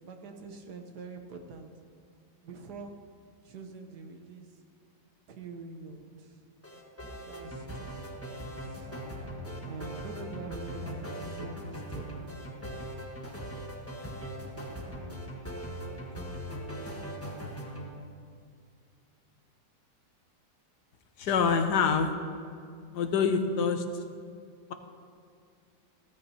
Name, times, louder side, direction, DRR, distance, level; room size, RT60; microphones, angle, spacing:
voice 1, 0.0-1.7 2.4-3.0 3.4-4.5 5.3-6.4 7.3-8.0 8.3-8.9 9.7-12.5 15.8-17.0, right 3 dB, 65° right, 5 dB, 1.5 m, -45 dB
sound 1, 6.6-17.9, equal, 10° left, 1.3 m, -40 dB
voice 2, 21.2-22.1 22.9-23.8, left 6 dB, 70° left, 7 dB, 1.4 m, -25 dB
16.0 x 14.5 x 2.9 m, 2.3 s
omnidirectional pair, 1.9 m